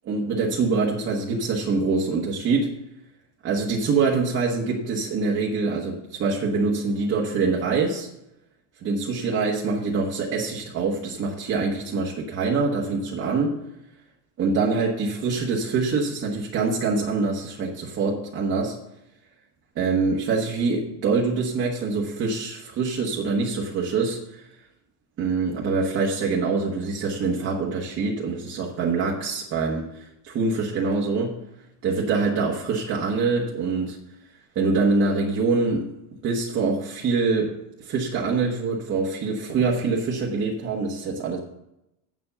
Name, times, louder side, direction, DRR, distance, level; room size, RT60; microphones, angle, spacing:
voice 1, 0.0-2.8 3.4-8.1 8.8-13.6 14.4-18.8 19.7-24.7 25.2-31.4 31.8-34.0 34.5-35.9 36.2-41.4, right 4 dB, 30° right, -3 dB, 1.3 m, -25 dB
8.3 x 7.3 x 6.8 m, 0.86 s
cardioid pair, 170°, 49 cm